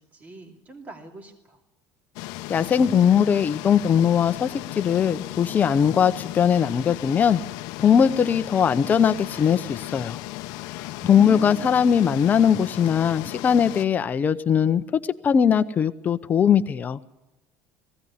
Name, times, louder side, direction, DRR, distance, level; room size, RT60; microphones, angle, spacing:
voice 1, 0.0-1.6 11.0-11.9, right 3 dB, 25° right, 2 dB, 2.7 m, -40 dB
sound 1, 2.2-13.9, left 18 dB, 70° left, 0.6 m, -36 dB
voice 2, 2.5-7.4 7.8-10.2 11.1-17.0, left 8 dB, 25° left, 11 dB, 0.7 m, -20 dB
20.0 x 16.0 x 9.6 m, 1.0 s
cardioid pair, 160°, 7 cm